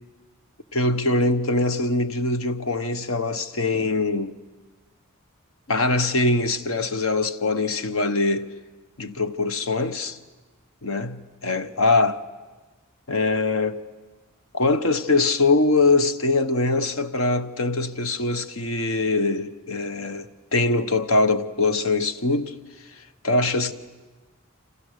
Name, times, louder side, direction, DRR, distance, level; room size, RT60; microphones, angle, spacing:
voice 1, 0.7-4.4 5.7-8.5 9.0-10.2 10.8-12.3 13.1-13.8 14.5-22.6 23.2-23.7, left 3 dB, 70° left, 1.1 m, -23 dB
29.0 x 27.0 x 6.6 m
head